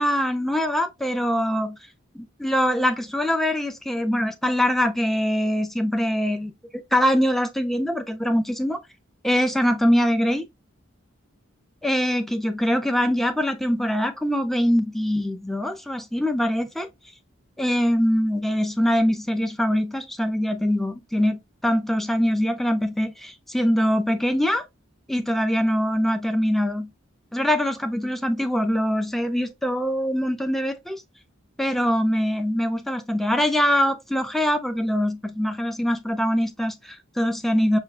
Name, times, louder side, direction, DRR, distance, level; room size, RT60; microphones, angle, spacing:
voice 1, 0.0-1.8 2.1-6.5 6.9-8.8 9.2-10.5 11.8-16.9 17.6-24.6 25.1-26.9 27.3-31.0 31.6-37.8, equal, ahead, 0.4 m, -23 dB
5.6 x 2.3 x 2.2 m
head